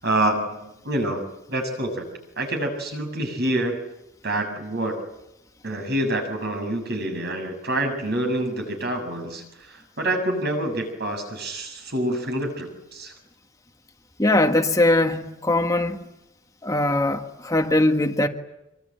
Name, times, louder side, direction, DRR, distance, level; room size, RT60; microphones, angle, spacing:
voice 1, 0.0-1.2 1.5-2.1 2.4-3.8 4.2-5.0 5.6-13.1, right 1 dB, 60° right, 7.1 m, -27 dB
voice 2, 14.2-16.0 16.6-18.3, left 1 dB, 20° left, 1.5 m, -21 dB
26.0 x 24.0 x 9.0 m
head